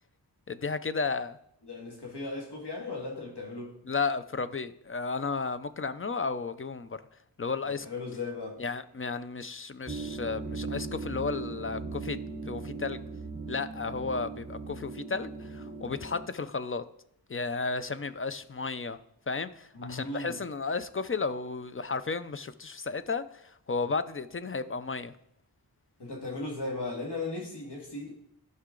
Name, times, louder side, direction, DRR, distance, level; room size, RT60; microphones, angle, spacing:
voice 1, 0.5-1.4 3.9-7.0 7.4-7.9 8.6-12.2 12.5-13.0 13.5-16.8 17.3-19.0 19.3-25.1, left 4 dB, 35° left, 13 dB, 0.4 m, -33 dB
voice 2, 1.6-3.7 7.6-8.6 19.7-20.4 26.0-28.1, left 2 dB, 90° left, -1 dB, 2.0 m, -37 dB
sound 1, 9.9-16.3, right 4 dB, 25° right, 1.1 m, -38 dB
13.0 x 5.6 x 3.8 m, 0.75 s
wide cardioid pair, 75°, 40 cm